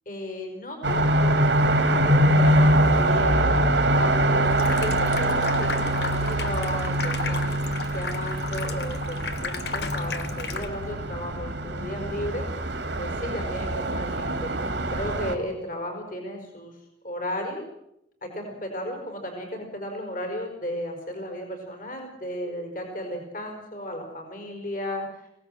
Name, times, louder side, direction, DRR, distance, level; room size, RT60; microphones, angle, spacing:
voice 1, 0.0-3.5 4.0-12.4 13.0-16.7 17.0-17.6 18.2-25.0, equal, 45° left, 3 dB, 5.0 m, -34 dB
sound 1, 0.8-15.3, right 1 dB, 75° right, 2.6 m, -24 dB
Water tap faucet / Sink (filling or washing), 4.4-10.9, left 4 dB, 60° left, 1.4 m, -34 dB
24.5 x 17.5 x 7.8 m, 0.81 s
head